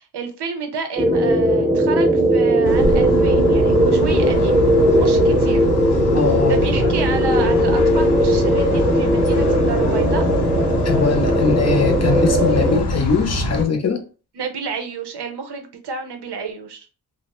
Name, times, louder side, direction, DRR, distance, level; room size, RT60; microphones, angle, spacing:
voice 1, 0.0-4.6 5.0-5.6 6.5-10.2 14.4-16.9, right 5 dB, 90° right, 6 dB, 0.6 m, -29 dB
sound 1, 1.0-12.8, equal, 10° right, 0.5 m, -18 dB
sound 2, 2.6-13.7, equal, 90° left, 0.6 m, -24 dB
voice 2, 6.1-6.9 10.8-14.0, left 5 dB, 40° left, 5 dB, 0.5 m, -21 dB
2.4 x 2.0 x 2.9 m, 0.36 s
wide cardioid pair, 105°, 39 cm